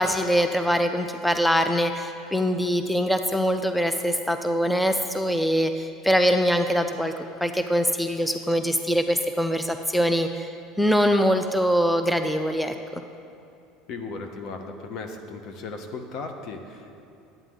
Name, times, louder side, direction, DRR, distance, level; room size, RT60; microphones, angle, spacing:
voice 1, 0.0-7.1 7.4-10.5 10.8-13.0, equal, 5° left, 7 dB, 0.4 m, -23 dB
voice 2, 13.9-17.0, left 3 dB, 55° left, 5 dB, 1.0 m, -36 dB
11.0 x 9.0 x 3.8 m, 2.7 s
supercardioid pair, 100°, 0 cm